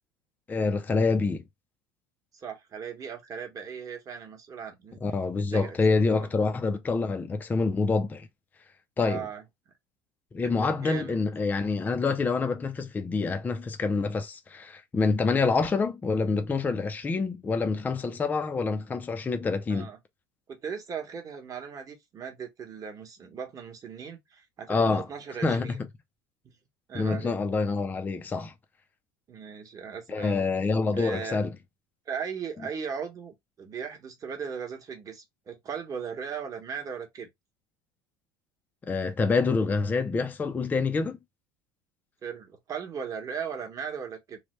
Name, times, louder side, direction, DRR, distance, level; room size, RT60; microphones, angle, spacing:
voice 1, 0.5-1.4 5.0-8.3 9.0-9.3 10.3-19.9 24.7-25.1 25.4-25.9 26.9-28.5 30.1-31.5 38.9-41.2, left 4 dB, 15° left, 0.4 m, -26 dB
voice 2, 2.3-5.0 5.4-6.3 9.0-9.4 10.4-11.1 19.7-20.0 20.5-25.8 26.9-27.4 29.3-30.4 30.9-31.4 32.1-37.3 42.2-44.4, right 6 dB, 30° right, 1.0 m, -38 dB
3.1 x 2.1 x 3.0 m
supercardioid pair, 125°, 12 cm